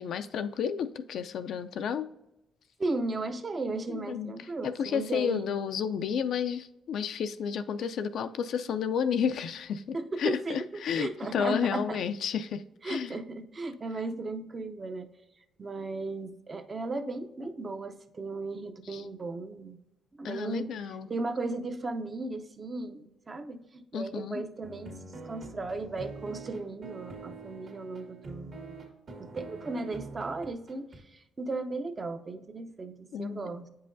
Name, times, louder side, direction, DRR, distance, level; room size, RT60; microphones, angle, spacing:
voice 1, 0.0-2.1 3.9-4.3 4.6-13.1 18.9-19.0 20.2-21.1 23.9-24.4 33.1-33.5, left 7 dB, 70° left, 10 dB, 0.3 m, -31 dB
voice 2, 2.8-5.5 9.9-12.0 12.8-15.1 15.6-19.8 20.2-20.7 21.1-28.5 29.2-33.7, right 3 dB, 35° right, 8 dB, 0.6 m, -36 dB
sound 1, 24.6-31.0, right 3 dB, 55° right, 1.5 m, -45 dB
8.4 x 5.5 x 2.6 m, 0.91 s
cardioid pair, 90°, 0 cm